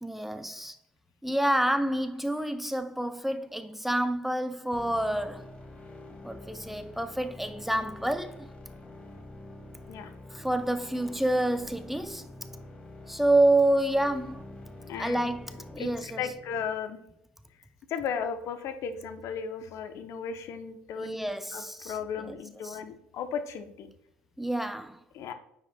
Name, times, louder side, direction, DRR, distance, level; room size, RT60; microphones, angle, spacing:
voice 1, 0.0-0.8 1.2-5.5 6.2-8.5 10.3-12.3 13.1-14.4 15.0-16.2 21.0-22.4 22.6-22.8 24.4-25.0, right 1 dB, 5° right, 0.5 m, -28 dB
sound 1, 4.7-16.7, left 1 dB, 20° left, 1.9 m, -46 dB
voice 2, 14.9-15.2 15.8-17.0 17.9-23.9 25.1-25.3, left 6 dB, 60° left, 0.7 m, -35 dB
9.4 x 5.0 x 2.2 m
hypercardioid pair, 60°, 6 cm